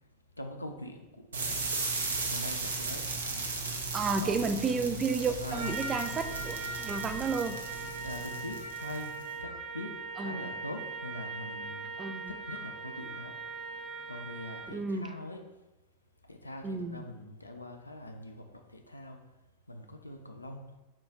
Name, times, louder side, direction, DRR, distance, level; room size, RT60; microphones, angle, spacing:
voice 1, 0.4-1.6 2.3-3.0 3.7-4.4 5.4-5.9 7.8-9.1 9.4-9.9 10.2-11.9 12.3-13.3 14.1-15.4 16.3-18.5 18.7-19.2 19.7-20.6, left 1 dB, 85° left, 4 dB, 0.3 m, -43 dB
sound 1, 1.3-9.2, right 3 dB, 70° right, 0.6 m, -36 dB
voice 2, 3.9-7.6 10.2-10.5 12.0-12.3 14.7-15.1 16.6-17.0, right 4 dB, 20° right, 8 dB, 0.3 m, -32 dB
Trumpet, 5.5-14.8, right 3 dB, 45° right, 1.0 m, -40 dB
4.4 x 2.3 x 4.3 m, 1.0 s
figure-of-eight pair, 90°, 0 cm